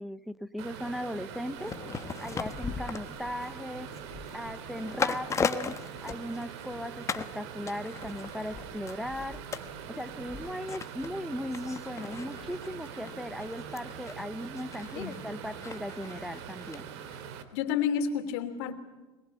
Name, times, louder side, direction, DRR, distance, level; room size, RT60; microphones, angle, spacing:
voice 1, 0.0-1.8 2.2-3.9 4.3-5.8 6.0-9.5 9.9-16.9, equal, ahead, 11 dB, 0.8 m, -37 dB
sound 1, 0.6-17.4, right 8 dB, 80° right, 2.6 m, -43 dB
sound 2, 1.6-6.7 7.1-7.4 7.7-16.8 17.1-17.2, left 5 dB, 20° left, 1.2 m, -38 dB
voice 2, 17.5-18.7, left 7 dB, 75° left, 7 dB, 3.1 m, -30 dB
23.0 x 22.0 x 8.4 m, 1.2 s
supercardioid pair, 135°, 14 cm